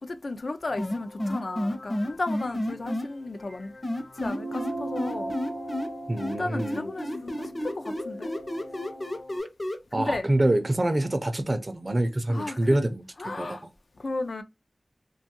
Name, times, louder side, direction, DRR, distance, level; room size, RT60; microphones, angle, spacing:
voice 1, 0.0-3.7 4.2-5.3 6.4-8.3 9.9-10.3 12.3-12.9 13.2-13.6 14.0-14.4, left 2 dB, 70° left, 0.4 m, -34 dB
sound 1, 0.7-9.4, left 2 dB, 85° left, 0.8 m, -45 dB
sound 2, 0.8-3.1 3.8-5.9 6.2-9.8, left 1 dB, 35° left, 0.7 m, -30 dB
sound 3, 4.3-9.1, right 2 dB, 75° right, 0.7 m, -38 dB
voice 2, 6.1-6.9 9.9-13.0 13.4-13.6, right 1 dB, 40° right, 0.4 m, -26 dB
2.5 x 2.3 x 2.8 m
wide cardioid pair, 60°, 0 cm